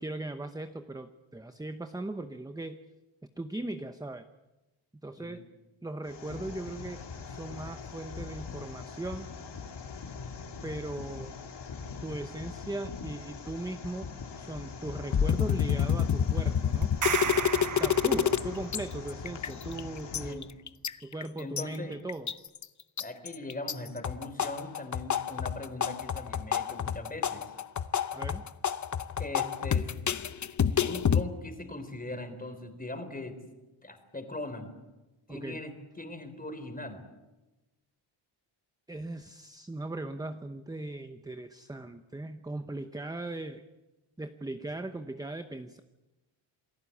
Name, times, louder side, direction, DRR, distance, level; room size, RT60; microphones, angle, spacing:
voice 1, 0.0-2.8 3.4-4.2 5.0-5.4 5.8-9.3 10.6-11.3 12.0-14.1 14.4-16.9 17.7-20.5 21.0-22.3 28.1-28.4 35.3-35.6 38.9-43.6 44.2-45.8, right 2 dB, 10° right, 8 dB, 0.8 m, -38 dB
sound 1, 6.0-20.3, left 5 dB, 55° left, 3.6 m, -42 dB
sound 2, 15.1-18.4 18.7-18.8 19.1-19.8 20.1-21.6 22.1-22.6 23.0-23.7 24.0-31.2, left 8 dB, 35° left, 0.8 m, -28 dB
sound 3, 16.8-18.8, right 7 dB, 40° right, 1.1 m, -33 dB
voice 2, 18.1-18.4 20.2-20.5 21.4-22.0 23.0-27.5 29.2-29.9 30.8-33.4 33.8-34.7 35.3-37.1, left 2 dB, 15° left, 8 dB, 3.6 m, -40 dB
28.0 x 19.5 x 8.5 m, 1.1 s
wide cardioid pair, 150°, 49 cm